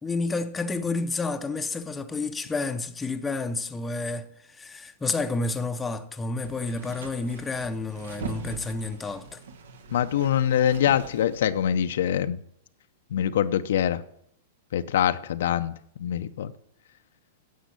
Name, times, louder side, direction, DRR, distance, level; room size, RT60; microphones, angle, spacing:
voice 1, 0.0-9.4, left 3 dB, 10° left, 0.7 m, -30 dB
sound 1, 6.4-11.9, right 5 dB, 85° right, 1.6 m, -42 dB
voice 2, 9.9-12.4 13.1-14.0 14.7-15.7 16.0-16.5, left 10 dB, 75° left, 0.7 m, -24 dB
10.0 x 7.2 x 8.4 m
supercardioid pair, 155°, 0 cm